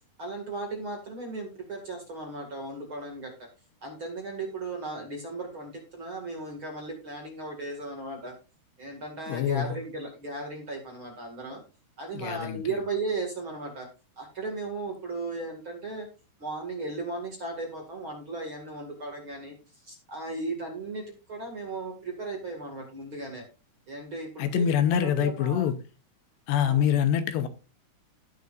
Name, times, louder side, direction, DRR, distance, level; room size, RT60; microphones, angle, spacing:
voice 1, 0.2-3.3 3.8-8.3 8.8-11.6 12.0-13.9 14.2-16.1 16.4-19.5 19.8-23.5 23.9-24.7 25.0-25.6 26.6-27.0, right 3 dB, 40° right, 2.2 m, -36 dB
voice 2, 9.3-9.8 12.1-12.6 24.4-25.8 26.5-27.5, left 9 dB, 80° left, 2.9 m, -25 dB
17.5 x 6.7 x 2.5 m
omnidirectional pair, 5.0 m